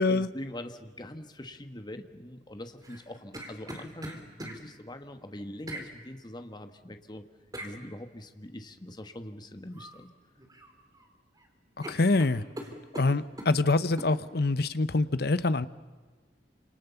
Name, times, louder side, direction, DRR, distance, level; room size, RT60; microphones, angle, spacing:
voice 1, 0.0-7.2 7.6-10.1, left 1 dB, 25° left, 7 dB, 1.6 m, -43 dB
sound 1, 2.8-4.6 5.7-5.9 7.5-7.7 9.7-10.0 10.4-11.1 11.4-11.5 11.8-13.5 14.0-14.1, right 1 dB, 20° right, 3.8 m, -41 dB
voice 2, 11.9-12.4 13.0-15.7, left 3 dB, 60° left, 14 dB, 0.9 m, -25 dB
28.5 x 26.5 x 7.1 m, 1.3 s
head